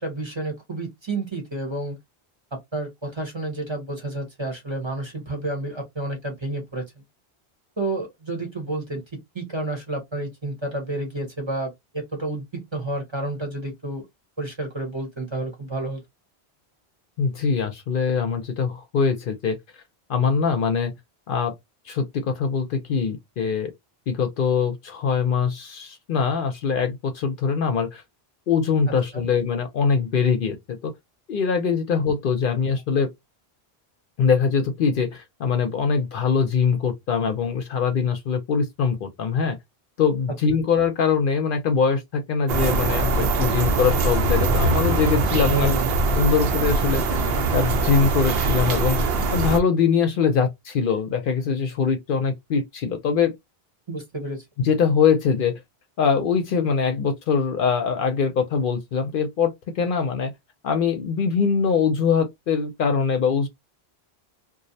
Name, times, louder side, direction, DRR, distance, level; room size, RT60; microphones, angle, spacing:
voice 1, 0.0-2.0 2.5-6.9 7.8-9.0 9.3-14.1 14.4-16.0 29.1-29.2 45.5-45.9 53.9-54.4, right 2 dB, 30° right, 0.7 m, -30 dB
voice 2, 17.2-19.6 20.1-20.9 21.3-21.5 21.9-23.7 24.1-28.0 28.5-30.9 31.3-33.1 34.2-39.6 40.0-45.8 46.2-53.4 54.6-55.6 56.0-60.3 60.6-63.5, left 6 dB, 60° left, 0.7 m, -23 dB
sound 1, 42.5-49.6, right 3 dB, 70° right, 0.8 m, -22 dB
2.5 x 2.0 x 2.6 m
omnidirectional pair, 1.1 m